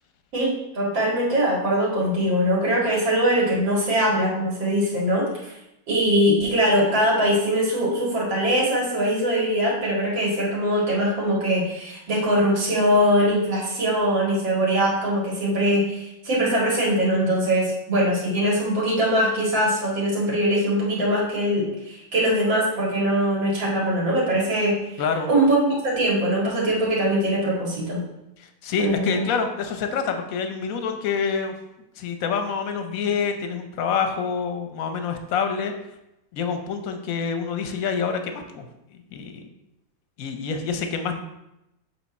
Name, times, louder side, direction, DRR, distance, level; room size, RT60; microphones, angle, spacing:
voice 1, 0.3-5.5 5.9-24.8 25.3-28.0 28.8-29.2, equal, 80° right, -4 dB, 2.7 m, -22 dB
voice 2, 25.0-25.3 28.4-31.5 32.0-35.7 36.3-39.5 40.2-41.2, left 6 dB, 60° left, 6 dB, 0.9 m, -27 dB
7.6 x 3.7 x 4.1 m, 0.87 s
omnidirectional pair, 2.0 m